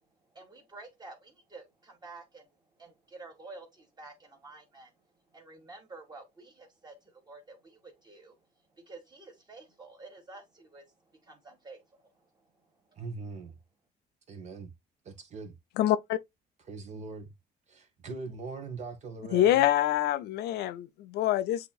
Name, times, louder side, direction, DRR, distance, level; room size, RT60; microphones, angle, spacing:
voice 1, 0.3-8.4 8.7-13.0, right 3 dB, 25° right, 1.9 m, -50 dB
voice 2, 13.0-13.6 14.3-14.7 15.0-15.5 16.6-17.3 17.7-19.6, right 4 dB, 45° right, 1.3 m, -41 dB
voice 3, 15.8-16.2 19.3-21.7, left 12 dB, 75° left, 0.5 m, -26 dB
7.9 x 2.9 x 2.3 m
cardioid pair, 110°, 17 cm